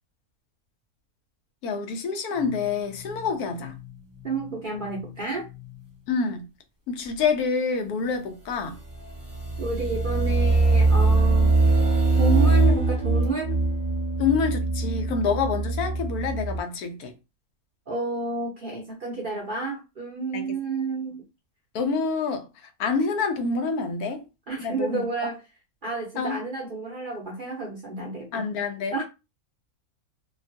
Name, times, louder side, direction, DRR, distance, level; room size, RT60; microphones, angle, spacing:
voice 1, 1.6-3.7 6.1-6.4 6.9-8.8 14.2-17.1 20.3-20.4 21.7-22.5 22.8-24.2 24.6-25.0 26.2-26.4 28.3-28.9, left 5 dB, 80° left, 1.1 m, -27 dB
sound 1, 2.4-2.7 2.9-3.3 3.6-3.9 4.2-4.5 4.8-5.1 5.5-5.7 8.9-16.6, right 3 dB, 15° right, 0.7 m, -23 dB
voice 2, 4.2-5.5 9.6-11.6 12.2-13.6 17.9-21.2 24.5-25.4 25.8-28.4 28.9-29.0, right 3 dB, 50° right, 0.6 m, -30 dB
2.9 x 2.2 x 2.5 m
omnidirectional pair, 1.6 m